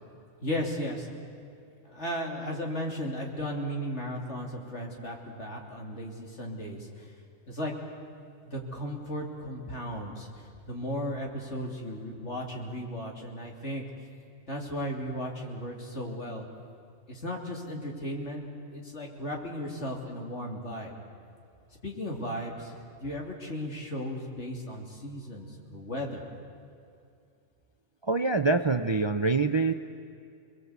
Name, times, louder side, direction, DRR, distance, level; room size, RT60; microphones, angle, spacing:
voice 1, 0.4-1.1 1.8-7.1 7.5-7.7 8.5-13.8 14.5-16.5 17.1-20.9 21.8-26.2, equal, 65° left, 0 dB, 3.4 m, -35 dB
voice 2, 28.0-29.7, right 3 dB, 30° right, 8 dB, 0.5 m, -25 dB
27.5 x 21.0 x 8.2 m, 2.5 s
omnidirectional pair, 1.3 m